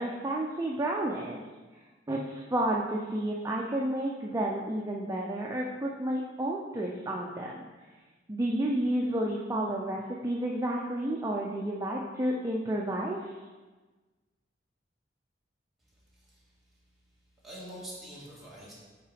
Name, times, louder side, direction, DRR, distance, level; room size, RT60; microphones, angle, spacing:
voice 1, 0.0-1.4 2.1-7.6 8.3-13.3, right 1 dB, 15° right, -2 dB, 0.4 m, -31 dB
voice 2, 15.8-16.6 17.4-18.7, equal, ahead, -8 dB, 1.8 m, -46 dB
5.8 x 3.8 x 4.9 m, 1.3 s
head